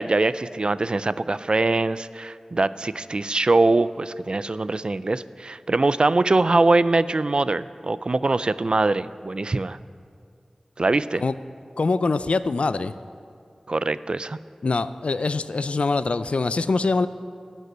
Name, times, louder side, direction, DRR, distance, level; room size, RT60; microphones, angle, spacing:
voice 1, 0.0-9.8 10.8-11.2 13.7-14.4, right 2 dB, 50° right, 16 dB, 0.3 m, -22 dB
voice 2, 11.8-12.9 14.6-17.1, left 3 dB, 75° left, 13 dB, 0.4 m, -23 dB
14.5 x 5.4 x 9.0 m, 2.4 s
wide cardioid pair, 45°, 2 cm